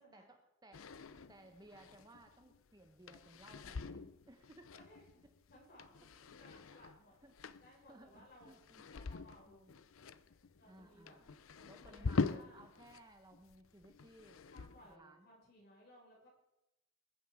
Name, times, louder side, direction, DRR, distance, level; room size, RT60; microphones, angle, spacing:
voice 1, 0.0-4.7 6.7-7.3 7.9-9.0 9.5-9.7 10.6-11.4 11.6-14.5 14.9-15.3, right 1 dB, 20° right, 6 dB, 1.0 m, -60 dB
sound 1, 0.7-13.0 13.3-14.9, left 4 dB, 75° left, 0.6 m, -44 dB
voice 2, 4.7-5.2 5.5-7.1 7.6-8.5 8.9-9.8 10.6-11.2 11.5-12.6 14.5-16.3, left 1 dB, 50° left, -3 dB, 7.0 m, -62 dB
21.0 x 9.4 x 4.9 m, 0.91 s
head